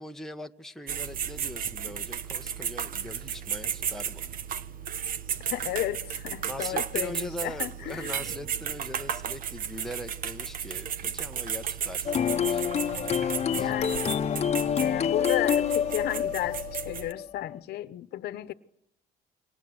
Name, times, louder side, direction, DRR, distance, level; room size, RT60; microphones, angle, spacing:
voice 1, 0.0-4.3 6.4-12.7 13.5-13.7, left 1 dB, ahead, 1.3 m, -41 dB
sound 1, 0.9-17.1, right 8 dB, 55° right, 1.3 m, -34 dB
voice 2, 5.5-8.2 13.5-14.2 14.8-18.5, left 14 dB, 70° left, 1.2 m, -33 dB
sound 2, 12.1-17.6, left 8 dB, 40° left, 1.1 m, -27 dB
28.5 x 24.5 x 8.0 m
cardioid pair, 110°, 17 cm